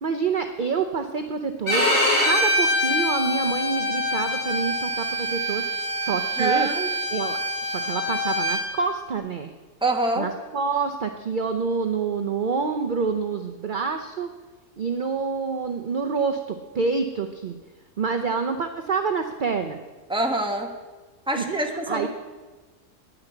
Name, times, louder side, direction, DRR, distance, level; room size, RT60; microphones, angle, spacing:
voice 1, 0.0-1.9 2.2-5.6 5.9-6.7 7.1-7.4 7.7-9.5 10.2-14.3 14.8-17.6 18.0-19.8 21.3-22.1, right 5 dB, 45° right, 7 dB, 0.7 m, -27 dB
Bowed string instrument, 1.7-8.6, left 1 dB, 40° left, 3.6 m, -24 dB
voice 2, 6.4-6.9 9.8-10.3 20.1-20.7 21.3-22.1, right 2 dB, 5° right, 3 dB, 1.2 m, -25 dB
10.0 x 9.8 x 8.1 m, 1.3 s
omnidirectional pair, 1.5 m